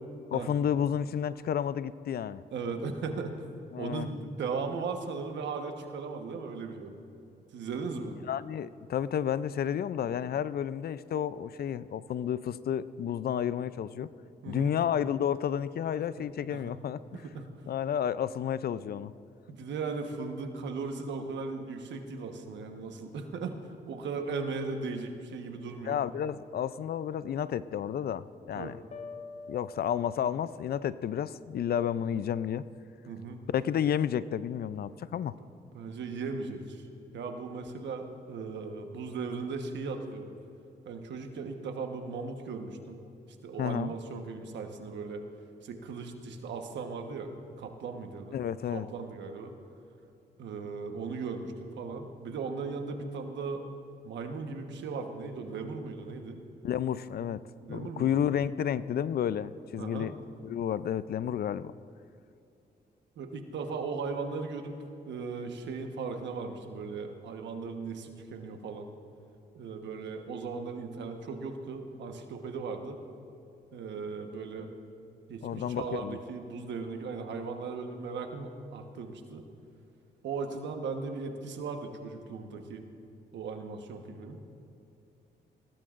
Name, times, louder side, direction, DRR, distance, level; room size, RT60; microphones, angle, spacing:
voice 1, 0.3-2.4 3.7-4.1 8.3-14.1 14.5-17.2 17.7-19.1 25.8-28.8 29.5-32.6 33.5-35.3 43.6-43.9 48.3-48.9 56.6-57.4 57.7-60.1 60.4-61.7 75.4-76.2, left 9 dB, 60° left, 16 dB, 0.4 m, -31 dB
voice 2, 2.5-3.4 3.8-7.0 7.5-8.2 14.4-14.7 16.5-16.7 17.1-17.5 19.5-23.6 23.9-26.0 28.5-28.8 33.1-33.4 35.7-36.8 37.1-40.3 40.8-43.0 43.4-45.2 45.6-47.3 47.6-48.4 48.7-49.5 50.4-53.6 54.0-56.4 57.6-58.2 59.8-60.1 63.2-64.8 65.0-68.9 69.5-73.0 73.7-74.7 75.3-79.4 80.2-82.8 83.3-84.4, right 4 dB, 80° right, 5 dB, 1.2 m, -37 dB
sound 1, 28.9-30.8, left 3 dB, 40° left, 1.0 m, -46 dB
19.5 x 16.0 x 2.5 m, 2.7 s
cardioid pair, 70°, 18 cm